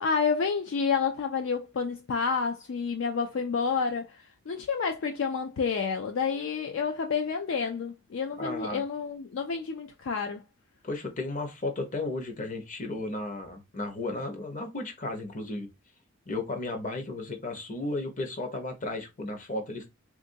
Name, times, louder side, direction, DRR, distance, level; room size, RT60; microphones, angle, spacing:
voice 1, 0.0-10.4, left 5 dB, 60° left, 0.4 m, -29 dB
voice 2, 8.4-8.8 10.8-15.7 16.3-19.9, left 2 dB, 35° left, 0.8 m, -34 dB
3.6 x 2.5 x 2.5 m
head